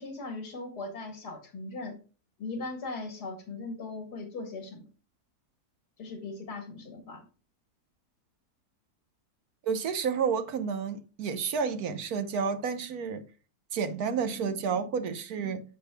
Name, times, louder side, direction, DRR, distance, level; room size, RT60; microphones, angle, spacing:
voice 1, 0.0-2.0 2.4-4.9 6.0-7.2, left 3 dB, 85° left, 2.2 m, -39 dB
voice 2, 9.6-13.2 13.7-15.6, right 6 dB, 70° right, 1.4 m, -30 dB
14.0 x 5.3 x 2.2 m
omnidirectional pair, 1.7 m